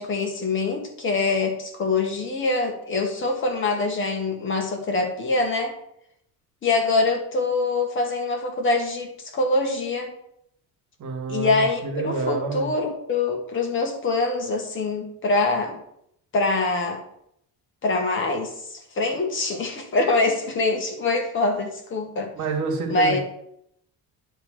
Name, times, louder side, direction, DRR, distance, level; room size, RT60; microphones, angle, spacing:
voice 1, 0.0-5.7 6.6-10.1 11.3-15.8 16.3-17.0 17.8-22.3 22.9-23.2, left 3 dB, 35° left, 3 dB, 1.4 m, -24 dB
voice 2, 11.0-12.7 22.3-23.2, right 3 dB, 55° right, 2 dB, 1.7 m, -28 dB
9.9 x 3.4 x 6.2 m, 0.72 s
cardioid pair, 175°, 35 cm